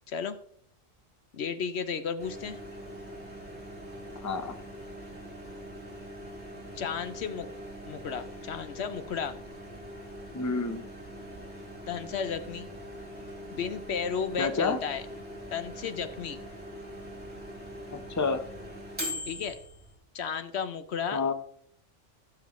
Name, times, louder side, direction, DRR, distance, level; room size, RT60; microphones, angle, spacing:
voice 1, 0.1-0.4 1.3-2.6 6.7-7.5 7.9-9.4 11.9-12.7 13.5-15.0 15.5-16.4 19.3-19.6 20.1-21.2, left 6 dB, 65° left, 11 dB, 0.9 m, -33 dB
Microwave oven, 2.2-19.9, equal, 5° right, 3.9 m, -42 dB
voice 2, 4.2-4.5 10.3-10.8 14.4-14.8 17.9-18.4 21.1-21.3, left 4 dB, 15° left, 8 dB, 0.7 m, -29 dB
15.5 x 7.2 x 3.1 m, 0.65 s
omnidirectional pair, 1.2 m